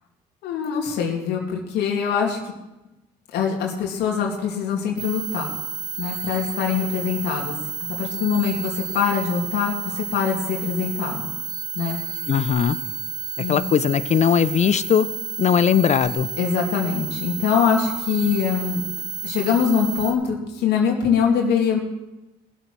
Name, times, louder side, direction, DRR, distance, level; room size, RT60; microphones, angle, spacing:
voice 1, 0.4-2.4 3.3-5.5 6.0-7.5 8.0-11.2 11.8-12.0 13.4-13.6 16.4-18.8 19.2-21.8, left 7 dB, 80° left, 0 dB, 2.4 m, -23 dB
sound 1, 5.0-20.1, right 6 dB, 45° right, 1.9 m, -31 dB
voice 2, 12.3-12.8 13.5-15.1 15.4-16.3, left 8 dB, 40° left, 16 dB, 0.7 m, -19 dB
18.5 x 8.0 x 6.1 m, 0.98 s
cardioid pair, 110°, 17 cm